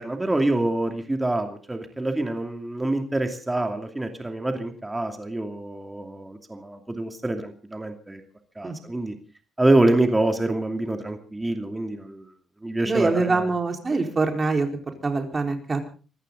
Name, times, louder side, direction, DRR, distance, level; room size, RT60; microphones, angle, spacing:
voice 1, 0.0-8.2 8.6-9.2 9.6-12.3 12.6-13.5, right 2 dB, 15° right, 5 dB, 2.6 m, -26 dB
voice 2, 12.8-14.7 15.0-15.8, right 3 dB, 30° right, 4 dB, 4.4 m, -24 dB
24.5 x 14.5 x 3.9 m, 0.37 s
cardioid pair, 90°, 0 cm